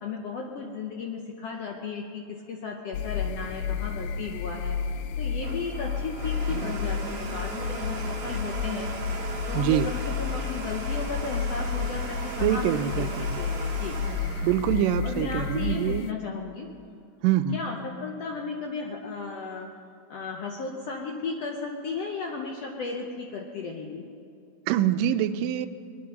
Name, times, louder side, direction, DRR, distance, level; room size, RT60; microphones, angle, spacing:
voice 1, 0.0-4.8 5.2-8.9 9.5-14.0 15.0-16.7 17.5-19.7 20.1-24.0, left 4 dB, 70° left, 1 dB, 1.5 m, -35 dB
sound 1, 2.9-16.1, left 6 dB, 90° left, 1.6 m, -31 dB
Domestic sounds home sounds, 5.1-15.8, right 4 dB, 50° right, 2.2 m, -38 dB
voice 2, 9.5-9.9 12.4-13.4 14.4-16.1 17.2-17.6 24.7-25.7, right 11 dB, 85° right, 11 dB, 2.2 m, -25 dB
20.0 x 11.0 x 5.9 m, 2.5 s
omnidirectional pair, 3.9 m